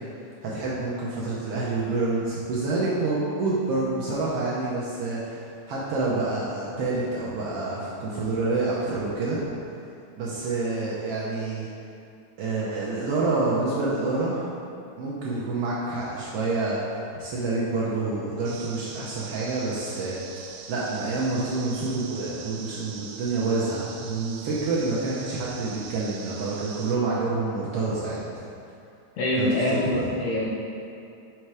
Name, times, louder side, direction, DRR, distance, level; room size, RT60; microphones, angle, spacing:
voice 1, 0.4-9.4 10.2-11.7 12.4-14.4 15.0-20.2 20.7-28.5 29.4-30.1, right 3 dB, 70° right, -7 dB, 1.6 m, -28 dB
sound 1, 18.4-27.0, right 6 dB, 85° right, 2.0 m, -42 dB
voice 2, 29.2-30.5, left 1 dB, 70° left, -3 dB, 1.7 m, -24 dB
6.5 x 4.6 x 4.8 m, 2.6 s
omnidirectional pair, 3.4 m